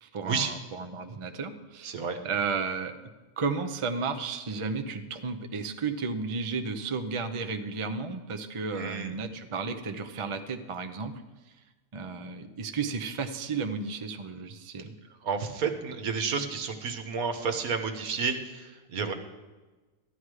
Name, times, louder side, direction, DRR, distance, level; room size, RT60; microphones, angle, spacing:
voice 1, 0.0-1.9 2.2-2.9 3.4-11.2 11.9-14.9, right 4 dB, 35° right, 7 dB, 0.5 m, -33 dB
voice 2, 1.8-2.2 8.7-9.1 15.2-19.1, right 5 dB, 75° right, 6 dB, 1.5 m, -31 dB
13.5 x 11.0 x 4.9 m, 1.2 s
omnidirectional pair, 1.6 m